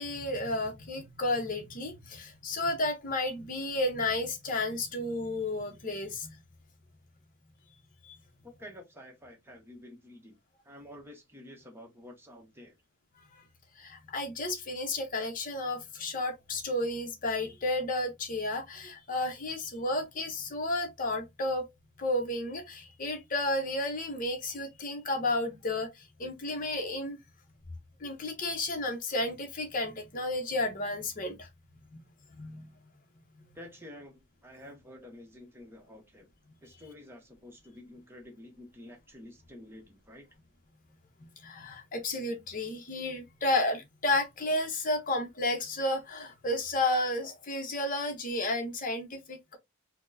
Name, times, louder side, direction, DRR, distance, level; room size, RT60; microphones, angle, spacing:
voice 1, 0.0-6.4 8.0-8.2 13.3-13.4 13.8-21.7 22.0-27.2 28.0-31.5 31.9-32.0 32.3-32.7 41.4-49.6, left 2 dB, 40° left, 0.7 m, -32 dB
voice 2, 8.4-10.4 10.6-12.8 33.5-36.3 36.6-40.3, left 1 dB, 10° right, 0.8 m, -50 dB
4.2 x 2.1 x 2.6 m
head